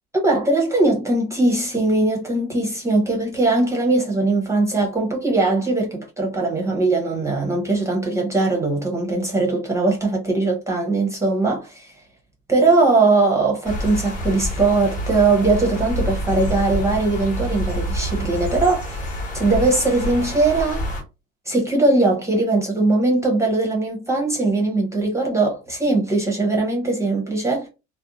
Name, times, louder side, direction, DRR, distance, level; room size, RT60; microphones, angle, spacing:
voice 1, 0.2-11.9 12.5-19.0 19.3-20.8 21.5-27.7, right 2 dB, 10° right, 0.6 m, -20 dB
sound 1, 13.6-21.0, equal, 25° left, 0.9 m, -27 dB
2.5 x 2.1 x 2.8 m
cardioid pair, 130°, 30 cm